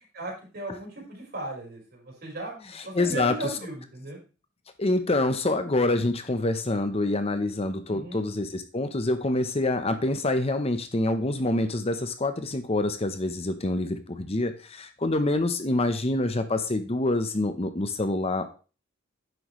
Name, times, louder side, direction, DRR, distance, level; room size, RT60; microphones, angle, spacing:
voice 1, 0.1-4.2 7.9-8.2, right 2 dB, 55° right, -2 dB, 4.8 m, -37 dB
voice 2, 2.7-3.5 4.8-18.5, left 2 dB, 30° left, 9 dB, 0.8 m, -26 dB
10.0 x 7.8 x 3.1 m, 0.35 s
head